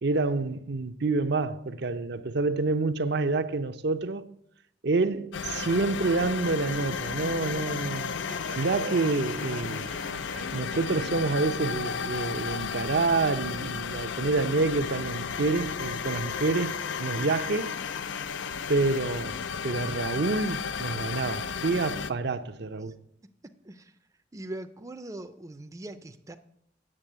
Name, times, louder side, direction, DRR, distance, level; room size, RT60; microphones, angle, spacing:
voice 1, 0.0-4.2 4.8-8.1 8.6-9.9 10.5-17.7 18.7-23.0, right 3 dB, 60° right, 0.6 m, -28 dB
sound 1, 5.3-22.1, left 6 dB, 80° left, 0.5 m, -33 dB
sound 2, 5.5-11.5, right 3 dB, 90° right, 1.3 m, -45 dB
voice 2, 23.2-23.9 24.3-26.4, right 1 dB, 20° right, 0.5 m, -41 dB
8.8 x 7.0 x 7.9 m
head